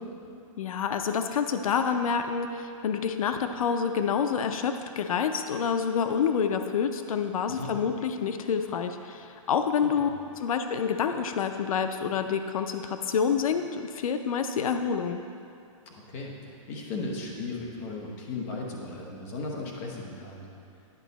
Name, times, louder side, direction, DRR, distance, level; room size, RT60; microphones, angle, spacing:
voice 1, 0.6-10.1 10.4-15.2, left 6 dB, 85° left, 7 dB, 0.5 m, -28 dB
voice 2, 15.9-16.3 16.7-20.5, left 3 dB, 25° left, -1 dB, 0.9 m, -36 dB
10.5 x 5.5 x 4.0 m, 2.5 s
hypercardioid pair, 175°, 17 cm